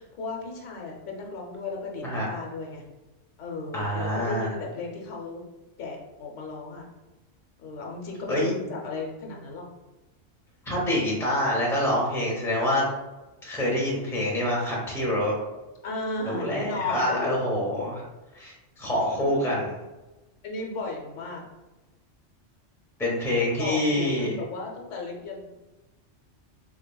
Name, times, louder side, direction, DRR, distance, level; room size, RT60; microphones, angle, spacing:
voice 1, 0.0-2.8 3.4-5.4 5.8-6.9 7.6-9.6 15.8-17.5 19.0-19.3 20.4-21.5 23.6-25.5, left 3 dB, 90° left, 0 dB, 1.1 m, -34 dB
voice 2, 3.7-4.5 8.3-8.5 10.7-12.9 13.4-15.3 16.3-18.0 18.3-19.8 23.0-24.3, left 1 dB, 5° left, -4 dB, 0.7 m, -26 dB
3.3 x 3.2 x 2.2 m, 1.1 s
omnidirectional pair, 1.2 m